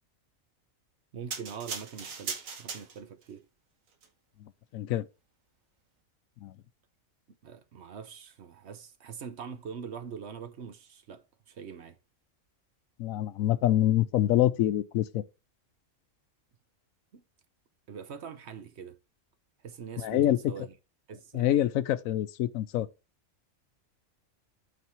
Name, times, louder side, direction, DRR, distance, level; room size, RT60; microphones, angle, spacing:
voice 1, 1.1-3.4 7.3-12.0 17.1-17.2 17.9-19.0 19.6-20.7 21.1-21.5, right 7 dB, 60° right, 1.1 m, -43 dB
sound 1, 1.3-3.3 3.9-4.1, right 5 dB, 85° right, 1.6 m, -38 dB
voice 2, 4.7-5.1 6.4-6.6 13.0-15.2 20.0-20.4 21.3-22.9, left 13 dB, 90° left, 1.0 m, -26 dB
8.4 x 4.1 x 4.6 m
omnidirectional pair, 1.4 m